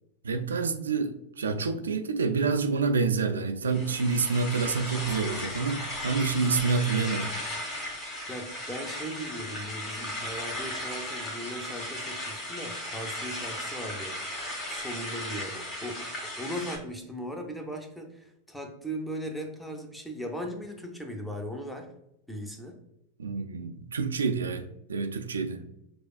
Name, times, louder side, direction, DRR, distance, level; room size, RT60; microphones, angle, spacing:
voice 1, 0.2-7.3 23.2-25.6, right 4 dB, 70° right, 7 dB, 0.3 m, -28 dB
sound 1, 3.7-16.8, left 1 dB, 30° left, 1.2 m, -36 dB
voice 2, 8.3-16.1 16.4-21.9 22.3-22.8, equal, 5° left, 3 dB, 0.6 m, -38 dB
6.1 x 2.3 x 2.3 m, 0.84 s
figure-of-eight pair, 90°, 0 cm